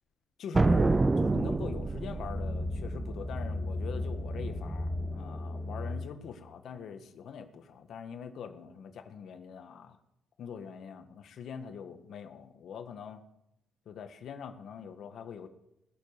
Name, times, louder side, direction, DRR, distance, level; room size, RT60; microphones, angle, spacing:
voice 1, 0.4-10.0 10.4-13.2 13.8-15.5, left 7 dB, 65° left, 7 dB, 1.5 m, -43 dB
sound 1, 0.5-2.3, right 3 dB, 20° right, 0.6 m, -25 dB
sound 2, 1.0-6.1, left 1 dB, 5° left, 2.4 m, -36 dB
19.5 x 7.1 x 6.7 m, 0.84 s
cardioid pair, 90°, 0 cm